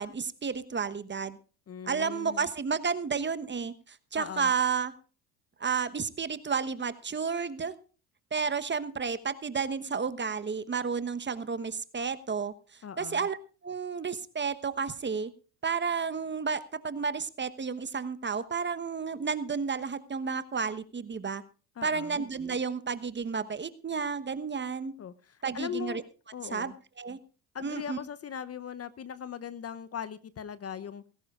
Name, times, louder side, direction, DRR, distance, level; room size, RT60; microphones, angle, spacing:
voice 1, 0.0-1.4 1.8-4.9 5.6-7.7 8.3-12.5 13.0-13.4 13.6-15.3 15.6-21.4 21.8-24.9 25.4-26.0 26.5-27.2 27.6-28.0, right 5 dB, 25° right, 13 dB, 1.1 m, -31 dB
voice 2, 1.7-2.5 4.1-4.5 12.8-13.3 21.8-22.2 25.0-26.0 26.3-26.8 27.5-31.0, left 8 dB, 30° left, 14 dB, 0.8 m, -39 dB
19.0 x 16.5 x 2.5 m, 0.36 s
hypercardioid pair, 70°, 46 cm